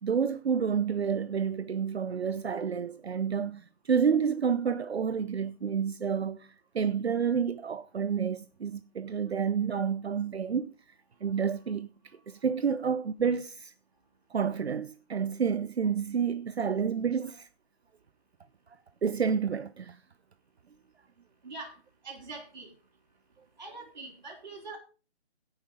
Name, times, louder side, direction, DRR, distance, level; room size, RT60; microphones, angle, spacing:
voice 1, 0.0-10.7 11.2-11.9 12.3-13.7 14.3-17.5 19.0-20.0, right 7 dB, 65° right, 0.7 m, -29 dB
voice 2, 21.4-21.8 22.0-22.7 23.6-24.8, right 3 dB, 40° right, 3.5 m, -43 dB
16.5 x 5.7 x 5.0 m
hypercardioid pair, 175°, 34 cm